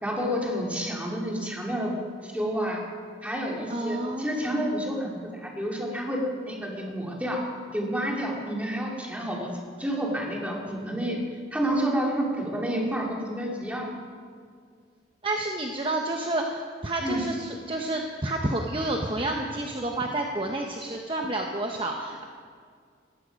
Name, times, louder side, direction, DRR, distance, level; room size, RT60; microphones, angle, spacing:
voice 1, 0.0-1.9 2.2-2.8 3.2-7.4 7.7-11.2 11.5-13.9 17.0-17.2, equal, 10° right, -2 dB, 2.6 m, -29 dB
voice 2, 3.7-4.6 15.2-22.2, right 2 dB, 30° right, 1 dB, 0.9 m, -30 dB
17.0 x 14.5 x 5.2 m, 2.1 s
head